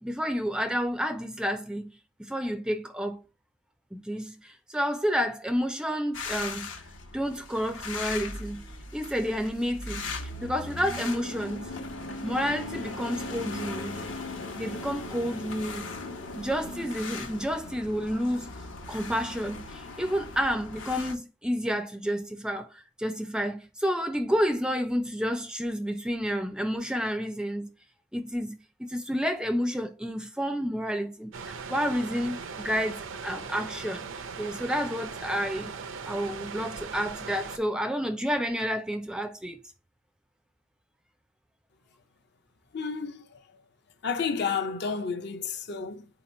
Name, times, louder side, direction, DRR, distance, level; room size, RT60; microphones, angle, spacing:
voice 1, 0.0-1.9 2.3-3.2 3.9-6.7 7.1-8.6 8.9-10.1 10.4-11.7 12.2-14.0 14.5-15.9 16.4-18.5 18.9-22.7 23.0-27.7 28.1-28.6 28.9-34.1 34.4-35.7 36.1-39.6, equal, 5° right, 0.3 m, -30 dB
sound 1, 6.1-21.1, left 3 dB, 80° left, 0.9 m, -38 dB
sound 2, 31.3-37.6, right 5 dB, 80° right, 0.6 m, -39 dB
voice 2, 42.7-43.4 44.0-46.1, left 5 dB, 55° left, 0.5 m, -31 dB
4.4 x 2.8 x 4.1 m
head